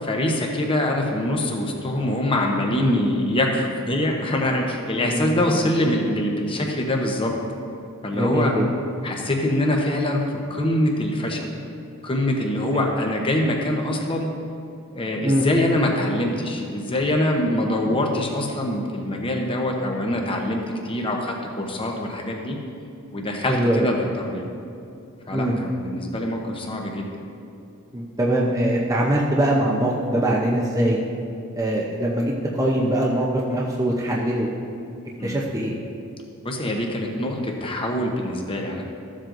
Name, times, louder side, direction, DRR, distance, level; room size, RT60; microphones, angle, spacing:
voice 1, 0.0-7.3 8.0-8.5 9.0-11.5 12.0-14.3 14.9-22.6 23.1-24.5 25.3-27.0 35.2-35.4 36.4-38.8, left 1 dB, 25° left, 1 dB, 0.9 m, -24 dB
voice 2, 5.0-5.9 8.1-8.7 12.7-12.8 15.2-15.5 23.5-23.9 25.3-25.6 27.9-31.0 31.5-34.5 35.2-35.8, right 1 dB, 15° right, -4 dB, 0.6 m, -22 dB
14.0 x 7.5 x 2.6 m, 2.6 s
head